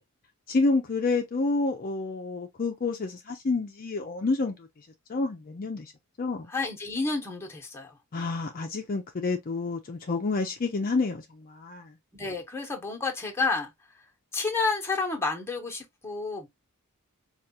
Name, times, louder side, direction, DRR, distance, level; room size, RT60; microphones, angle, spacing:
voice 1, 0.5-4.7 5.1-5.9 6.2-6.5 8.1-11.9, left 3 dB, 40° left, 0.5 m, -29 dB
voice 2, 6.5-7.9 12.1-13.7 14.3-16.5, left 3 dB, 10° left, 1.0 m, -30 dB
4.7 x 2.4 x 2.7 m
head